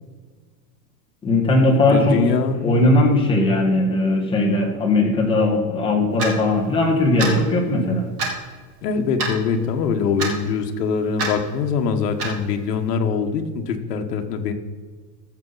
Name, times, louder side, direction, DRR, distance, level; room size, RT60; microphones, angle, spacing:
voice 1, 1.2-2.2 2.6-8.1, left 2 dB, 10° left, -1 dB, 1.6 m, -18 dB
voice 2, 1.9-2.9 8.8-14.5, left 5 dB, 70° left, 4 dB, 1.5 m, -23 dB
Clock, 6.2-6.3 7.2-7.4 8.2-8.4 9.2-9.4 10.2-10.3 11.2-11.3 12.2-12.4, right 3 dB, 15° right, 0.3 m, -25 dB
13.5 x 7.3 x 4.1 m, 1.5 s
supercardioid pair, 160°, 50 cm